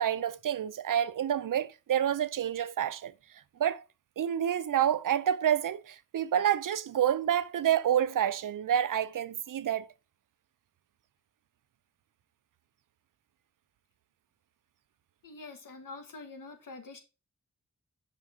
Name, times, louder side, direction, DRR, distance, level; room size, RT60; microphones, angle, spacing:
voice 1, 0.0-3.8 4.2-9.9, right 10 dB, 80° right, 0.5 m, -28 dB
voice 2, 15.2-17.0, left 3 dB, 85° left, 1.3 m, -45 dB
5.7 x 5.0 x 3.6 m
cardioid pair, 50°, 32 cm